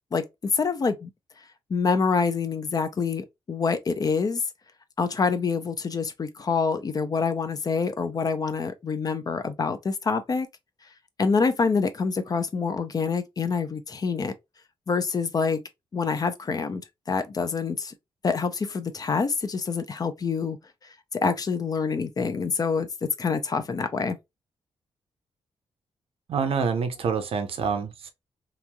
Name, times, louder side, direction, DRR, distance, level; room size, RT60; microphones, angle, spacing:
voice 1, 0.1-1.1 1.7-4.4 5.0-10.5 11.2-14.3 14.9-15.6 15.9-16.8 17.1-17.9 18.2-20.6 21.1-24.2, left 5 dB, 35° left, 0.5 m, -26 dB
voice 2, 26.3-28.1, right 5 dB, 65° right, 0.7 m, -27 dB
3.0 x 2.6 x 2.2 m
cardioid pair, 115°, 10 cm